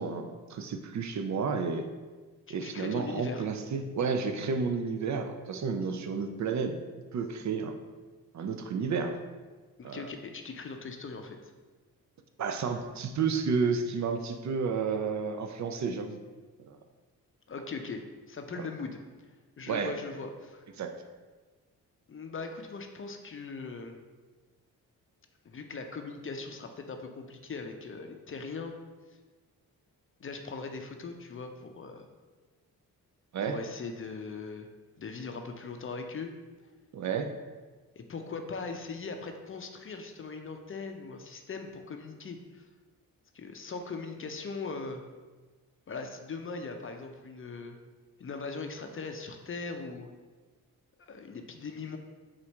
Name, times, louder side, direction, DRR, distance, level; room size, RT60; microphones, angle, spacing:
voice 1, 0.0-1.9 2.5-6.8 7.1-7.7 8.3-9.2 9.8-10.1 12.4-16.2 16.7-16.8 18.6-18.7 19.7-19.9 20.8-20.9 33.3-33.6 36.9-37.3, right 5 dB, 50° right, 6 dB, 0.5 m, -31 dB
voice 2, 2.5-3.5 9.8-11.5 17.5-18.0 18.3-19.0 19.6-20.6 22.1-24.0 25.4-28.8 30.2-32.1 33.4-34.7 35.0-36.3 38.0-42.6 43.3-45.0 45.9-47.8 48.2-50.1 51.0-52.0, left 4 dB, 35° left, 5 dB, 0.5 m, -40 dB
4.1 x 2.5 x 4.5 m, 1.3 s
supercardioid pair, 50°, 38 cm